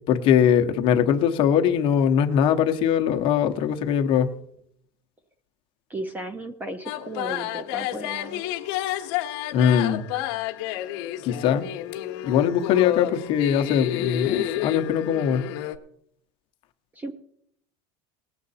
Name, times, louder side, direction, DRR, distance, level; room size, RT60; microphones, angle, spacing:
voice 1, 0.1-4.3 9.5-10.0 11.2-11.7 12.2-15.5, left 8 dB, 35° left, 6 dB, 0.8 m, -21 dB
voice 2, 5.9-8.4 17.0-17.1, right 1 dB, 10° right, 11 dB, 0.5 m, -35 dB
sound 1, 6.9-15.8, left 13 dB, 60° left, 0.9 m, -30 dB
19.0 x 7.6 x 4.1 m, 0.71 s
cardioid pair, 175°, 15 cm